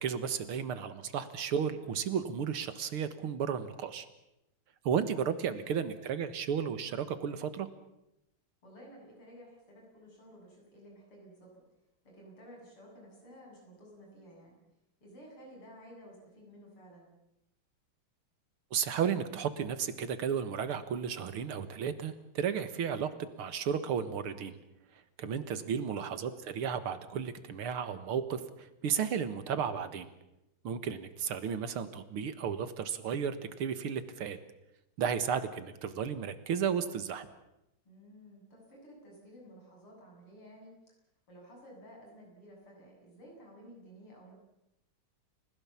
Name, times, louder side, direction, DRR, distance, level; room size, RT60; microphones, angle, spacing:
voice 1, 0.0-4.1 4.8-7.7 18.7-23.1 23.4-24.6 25.2-30.1 30.6-34.4 35.0-37.3, right 7 dB, 85° right, 12 dB, 2.4 m, -33 dB
voice 2, 8.6-11.6 12.0-14.6 15.0-17.1 25.6-26.0 37.9-40.7 41.3-44.3, equal, 85° left, -1 dB, 8.7 m, -54 dB
30.0 x 16.5 x 7.3 m, 0.88 s
omnidirectional pair, 2.4 m